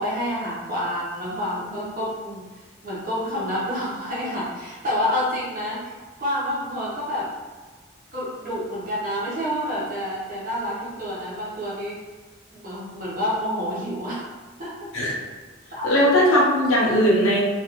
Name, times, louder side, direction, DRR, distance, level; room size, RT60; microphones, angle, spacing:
voice 1, 0.0-2.4 2.8-7.3 8.1-12.0 12.5-14.2 14.6-14.9 15.7-15.9, equal, 40° right, -7 dB, 0.9 m, -28 dB
voice 2, 15.8-17.4, equal, 80° left, -3 dB, 0.7 m, -18 dB
2.5 x 2.5 x 2.9 m, 1.3 s
head